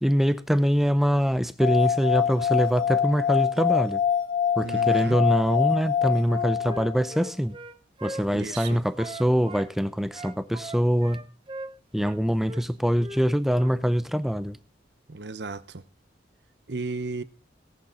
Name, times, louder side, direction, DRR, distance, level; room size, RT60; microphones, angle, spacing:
voice 1, 0.0-4.0 4.6-7.6 8.0-11.3 11.9-14.6, equal, ahead, 0.6 m, -24 dB
sound 1, 1.6-7.1, left 8 dB, 25° left, 1.2 m, -25 dB
voice 2, 4.6-5.2 8.3-8.8 15.1-15.8 16.7-17.2, right 3 dB, 60° right, 0.8 m, -34 dB
Wind instrument woodwind instrument, 6.2-9.7 10.1-12.2 12.4-12.6 13.0-13.2 13.5-13.7, right 2 dB, 25° right, 1.0 m, -40 dB
18.0 x 10.5 x 3.9 m
head